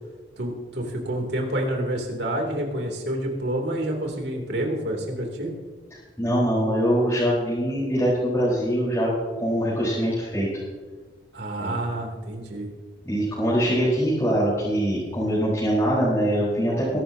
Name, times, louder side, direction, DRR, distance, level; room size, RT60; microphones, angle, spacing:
voice 1, 0.4-5.5 11.3-12.7, right 1 dB, 70° right, 1 dB, 2.9 m, -28 dB
voice 2, 6.2-9.1 9.4-10.5 11.6-11.8 13.0-17.0, equal, 15° left, -10 dB, 4.4 m, -23 dB
22.0 x 12.0 x 2.8 m, 1.4 s
head